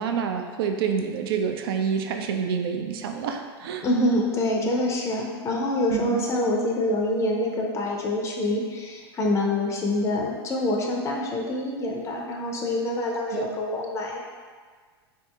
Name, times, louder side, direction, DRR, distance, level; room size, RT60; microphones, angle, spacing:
voice 1, 0.0-3.9 5.9-6.2 13.3-13.5, right 7 dB, 60° right, 5 dB, 0.4 m, -27 dB
voice 2, 3.8-14.2, left 1 dB, 20° left, -1 dB, 0.5 m, -26 dB
3.7 x 2.7 x 2.3 m, 1.6 s
hypercardioid pair, 95°, 14 cm